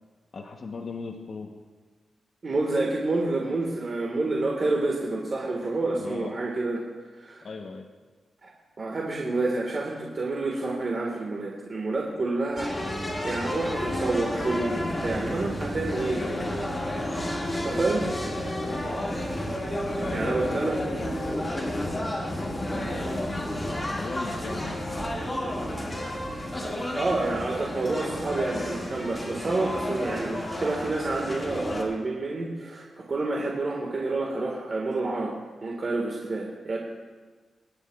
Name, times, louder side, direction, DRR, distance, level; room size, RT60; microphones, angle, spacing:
voice 1, 0.3-1.5 6.0-6.4 7.4-7.9 20.0-24.9, left 3 dB, 50° left, 2 dB, 1.0 m, -38 dB
voice 2, 2.4-6.8 7.1-7.4 8.4-8.5 8.8-12.7 13.2-16.2 17.6-18.1 20.1-20.8 26.4-26.5 26.9-35.3 35.6-36.8, right 2 dB, 40° right, -2 dB, 1.7 m, -28 dB
sound 1, 12.6-31.8, left 1 dB, 15° left, 2.0 m, -31 dB
24.0 x 10.5 x 2.4 m, 1.4 s
wide cardioid pair, 110°, 0 cm